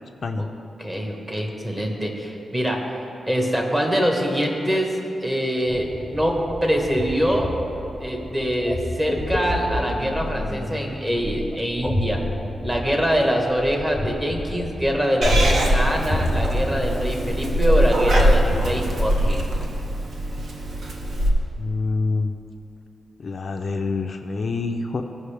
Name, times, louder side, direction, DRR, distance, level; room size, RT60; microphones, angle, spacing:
voice 1, 0.8-2.8 3.3-7.5 8.0-12.2 12.6-19.4, equal, 20° right, 1 dB, 1.2 m, -24 dB
sound 1, 5.7-19.4, left 1 dB, 5° left, 0.7 m, -31 dB
Purr / Meow, 15.2-21.3, equal, 65° right, 0.9 m, -22 dB
voice 2, 21.6-22.3 23.2-25.0, left 3 dB, 45° left, 5 dB, 0.4 m, -26 dB
15.5 x 5.3 x 3.4 m, 2.9 s
wide cardioid pair, 140°, 0 cm